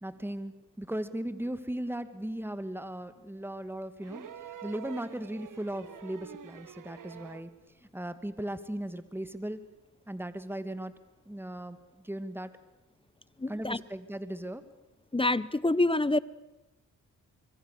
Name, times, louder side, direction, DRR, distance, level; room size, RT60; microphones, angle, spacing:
voice 1, 0.0-7.5 7.9-9.6 10.1-10.9 11.3-11.8 12.0-12.5 13.5-14.6, right 1 dB, 5° right, 12 dB, 2.3 m, -37 dB
sound 1, 4.0-7.6 8.9-9.0, right 9 dB, 60° right, 1.6 m, -47 dB
voice 2, 13.4-13.8 15.1-16.2, left 2 dB, 15° left, 20 dB, 0.9 m, -26 dB
25.0 x 23.5 x 6.8 m, 1.0 s
supercardioid pair, 45°, 36 cm